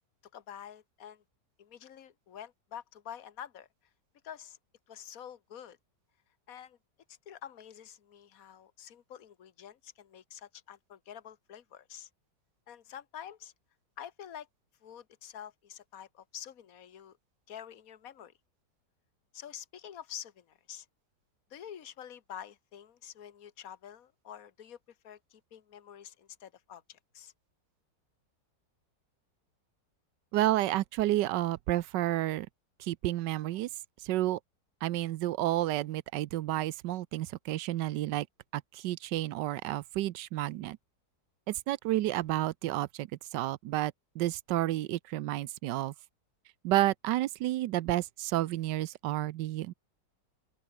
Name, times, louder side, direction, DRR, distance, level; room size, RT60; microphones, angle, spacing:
voice 1, 0.3-1.2 1.6-3.7 4.2-4.6 4.9-5.8 6.5-6.8 7.1-12.1 12.7-13.5 14.0-14.5 14.8-17.2 17.5-18.3 19.3-20.9 21.5-24.8 25.0-27.3, left 9 dB, 55° left, 1.8 m, -47 dB
voice 2, 30.3-32.5 32.8-33.7 34.0-34.4 34.8-38.3 38.5-40.8 41.5-45.9 46.6-49.7, right 15 dB, 80° right, 1.3 m, -31 dB
open air
omnidirectional pair, 1.9 m